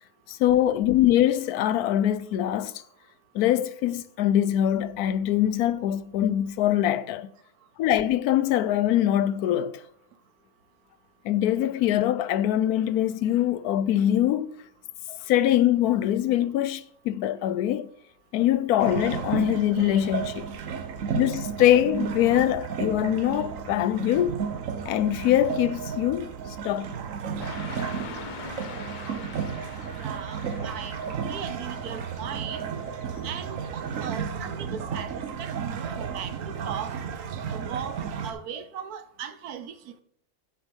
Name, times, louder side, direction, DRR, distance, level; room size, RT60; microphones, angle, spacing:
voice 1, 0.3-2.8 3.3-7.3 7.8-9.8 11.2-14.5 15.1-17.9 18.3-20.5 21.1-24.4 24.8-26.3 26.6-26.9, left 12 dB, 80° left, 1.1 m, -23 dB
sound 1, 18.8-38.3, right 7 dB, 60° right, 1.2 m, -33 dB
voice 2, 19.5-20.0 30.0-32.6 33.2-36.9 37.5-38.0 38.2-40.0, right 8 dB, 80° right, 1.3 m, -38 dB
Car passing by / Traffic noise roadway noise, 27.4-34.2, left 6 dB, 50° left, 0.5 m, -44 dB
7.3 x 7.2 x 5.3 m
omnidirectional pair, 1.6 m